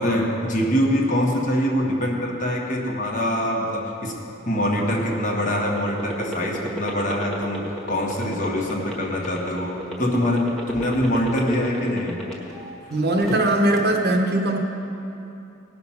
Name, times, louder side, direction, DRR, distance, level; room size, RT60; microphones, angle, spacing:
voice 1, 0.0-12.3, equal, 35° left, 0 dB, 1.4 m, -24 dB
sound 1, 4.4-12.7 13.0-13.8, equal, ahead, 1.5 m, -32 dB
voice 2, 12.9-14.6, right 1 dB, 50° right, 2 dB, 1.1 m, -20 dB
18.0 x 6.0 x 5.7 m, 2.9 s
head